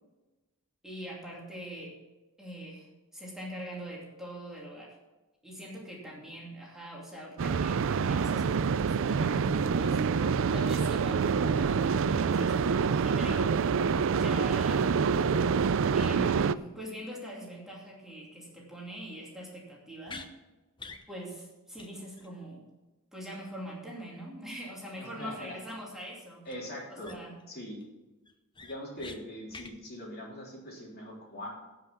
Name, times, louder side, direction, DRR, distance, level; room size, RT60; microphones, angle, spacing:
voice 1, 0.8-2.0 2.4-2.9 3.1-5.0 5.4-13.6 14.1-14.9 15.9-20.3 21.1-22.6 23.1-26.4 26.9-27.3, equal, ahead, -4 dB, 2.6 m, -43 dB
sound 1, 7.4-16.5, right 6 dB, 60° right, 0.4 m, -26 dB
sound 2, 20.1-20.3 20.8-21.0 21.4-21.5 21.8-21.9 22.2-22.3 26.5-26.6 27.0-27.4 27.8-27.9 28.3-29.2 29.5-29.7, left 4 dB, 20° left, 0.9 m, -45 dB
voice 2, 25.0-25.6 26.5-27.2 27.5-27.8 28.6-31.5, left 1 dB, 45° left, -3 dB, 3.7 m, -42 dB
17.0 x 5.9 x 5.9 m, 1.1 s
head